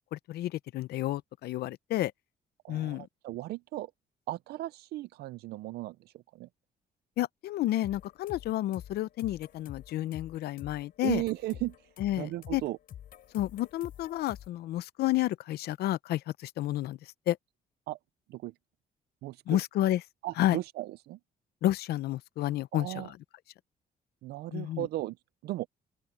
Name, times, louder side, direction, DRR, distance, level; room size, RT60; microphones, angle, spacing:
voice 1, 0.1-2.1 2.7-3.1 7.2-11.2 12.0-12.6 13.3-17.0 17.3-17.4 19.5-20.0 20.4-20.6 21.6-23.2 24.5-24.9, left 14 dB, 80° left, 0.7 m, -30 dB
voice 2, 2.6-3.9 4.3-6.0 6.3-6.5 11.0-11.7 12.2-12.8 17.9-18.0 18.3-18.5 19.2-19.6 20.2-21.2 22.7-23.1 24.2-25.2 25.4-25.7, right 17 dB, 80° right, 0.4 m, -36 dB
sound 1, 7.8-14.5, left 10 dB, 60° left, 4.2 m, -48 dB
open air
cardioid pair, 140°, 16 cm